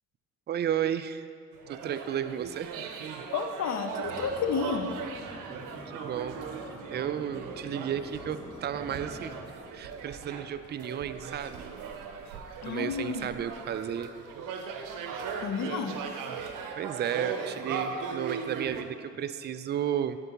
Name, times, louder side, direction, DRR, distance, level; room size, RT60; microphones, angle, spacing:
voice 1, 0.5-1.3 1.7-2.8 5.9-9.4 9.7-11.7 12.7-14.1 16.8-20.2, right 9 dB, 35° right, 12 dB, 0.4 m, -33 dB
sound 1, 1.5-18.8, right 6 dB, 75° right, 0.6 m, -39 dB
voice 2, 3.3-4.9 12.6-13.3 15.3-16.0, left 5 dB, 55° left, 7 dB, 0.7 m, -31 dB
sound 2, 4.0-9.4, equal, 10° left, 1.1 m, -46 dB
11.0 x 4.4 x 2.9 m, 2.3 s
supercardioid pair, 50°, 32 cm